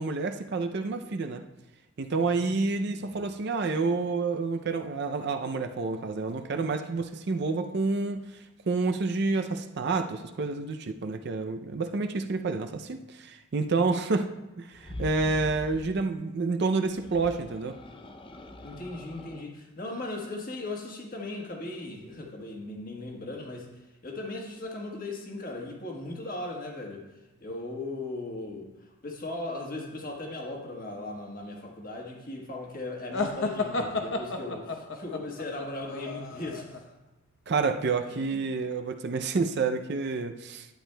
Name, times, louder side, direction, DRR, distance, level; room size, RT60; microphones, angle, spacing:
voice 1, 0.0-1.4 2.0-8.2 8.7-14.3 14.6-17.8 37.5-40.7, right 4 dB, 50° right, 6 dB, 0.4 m, -29 dB
voice 2, 2.3-3.2 18.6-23.7 24.0-27.0 27.4-36.9 38.0-38.4, left 2 dB, 40° left, 0 dB, 1.3 m, -38 dB
sound 1, 14.7-16.0 16.8-19.5, left 1 dB, 25° left, 0.4 m, -43 dB
sound 2, 33.1-36.8, left 3 dB, 55° left, 0.8 m, -32 dB
11.5 x 8.9 x 2.2 m, 1.0 s
head